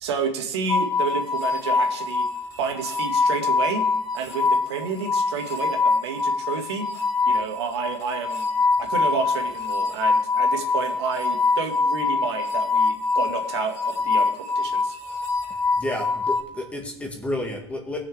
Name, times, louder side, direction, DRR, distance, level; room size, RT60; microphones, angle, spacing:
voice 1, 0.0-2.3 2.6-3.9 4.1-6.9 7.3-8.5 8.8-15.0, right 6 dB, 80° right, 3 dB, 2.0 m, -30 dB
sound 1, 0.7-16.4, left 4 dB, 30° left, 3.3 m, -24 dB
voice 2, 15.8-18.0, left 1 dB, 10° left, 2 dB, 1.7 m, -30 dB
18.0 x 6.4 x 3.5 m, 0.75 s
supercardioid pair, 140°, 14 cm